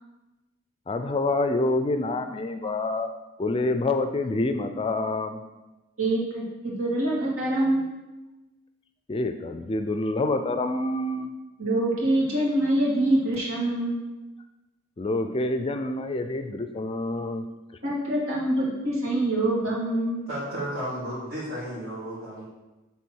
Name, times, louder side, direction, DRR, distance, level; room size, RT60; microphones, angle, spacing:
voice 1, 0.9-3.1 3.4-5.4 9.1-11.3 15.0-17.5, left 2 dB, 25° left, 8 dB, 0.4 m, -27 dB
voice 2, 6.0-7.9 11.6-14.0 17.8-20.2, right 1 dB, 90° right, -4 dB, 2.3 m, -25 dB
voice 3, 20.3-22.5, right 1 dB, 70° right, -10 dB, 2.4 m, -33 dB
7.3 x 3.6 x 6.2 m, 1.1 s
head